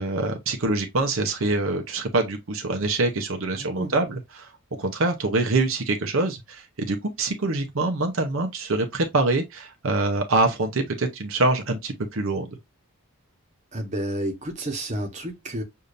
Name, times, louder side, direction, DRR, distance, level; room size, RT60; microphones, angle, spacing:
voice 1, 0.0-4.5 4.8-12.6, right 2 dB, 65° right, 0.7 m, -25 dB
voice 2, 3.5-3.9 13.7-15.6, right 1 dB, 30° right, 1.1 m, -30 dB
6.6 x 2.7 x 2.5 m
head